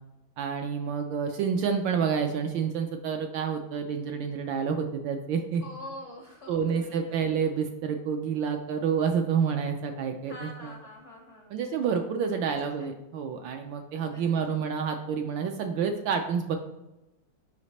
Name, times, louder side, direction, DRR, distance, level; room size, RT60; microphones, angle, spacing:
voice 1, 0.4-5.6 6.5-10.7 11.5-16.6, right 6 dB, 75° right, 5 dB, 1.1 m, -29 dB
voice 2, 5.6-7.2 10.3-11.6 12.5-12.9 14.0-14.5, left 1 dB, 65° left, -1 dB, 0.7 m, -45 dB
5.1 x 4.9 x 4.1 m, 0.95 s
omnidirectional pair, 2.4 m